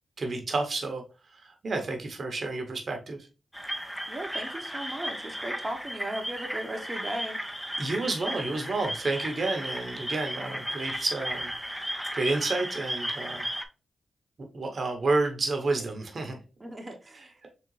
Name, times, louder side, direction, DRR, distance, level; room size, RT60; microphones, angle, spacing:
voice 1, 0.2-1.0 1.3-3.2 7.8-11.5 12.1-13.4 14.4-16.4, right 3 dB, 55° right, 4 dB, 0.9 m, -30 dB
sound 1, 3.5-13.6, equal, ahead, 0.6 m, -35 dB
voice 2, 4.1-7.4 16.6-17.3, right 1 dB, 20° right, 2 dB, 0.9 m, -36 dB
3.7 x 3.2 x 3.1 m, 0.32 s
cardioid pair, 70°, 0 cm